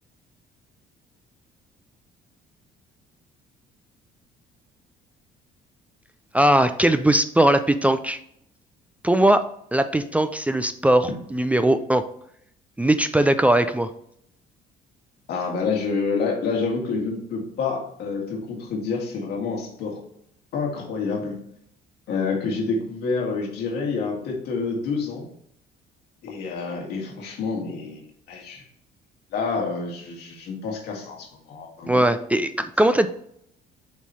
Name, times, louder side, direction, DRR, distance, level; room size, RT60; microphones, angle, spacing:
voice 1, 6.3-8.2 9.0-9.5 9.7-12.0 12.8-13.9 31.9-33.1, right 1 dB, 10° right, 10 dB, 0.3 m, -19 dB
voice 2, 15.3-20.0 20.5-21.4 22.1-25.3 26.2-28.0 28.3-28.7 29.3-32.0, left 4 dB, 75° left, 0 dB, 1.9 m, -28 dB
7.2 x 3.1 x 4.2 m, 0.70 s
cardioid pair, 110°, 17 cm